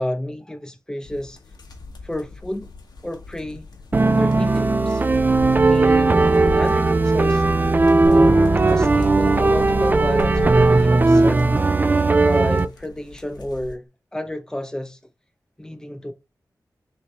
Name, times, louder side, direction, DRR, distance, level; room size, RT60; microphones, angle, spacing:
voice 1, 0.0-1.4 2.0-2.7 3.0-3.6 4.0-5.0 5.6-7.4 8.0-11.4 12.2-15.0 15.6-16.1, left 1 dB, 10° left, 0.7 m, -30 dB
sound 1, 1.0-13.7, left 3 dB, 85° left, 1.1 m, -36 dB
sound 2, 3.9-12.7, right 3 dB, 25° right, 0.4 m, -17 dB
sound 3, 8.0-11.8, right 2 dB, 45° right, 1.6 m, -31 dB
6.0 x 2.8 x 3.1 m
wide cardioid pair, 115°, 7 cm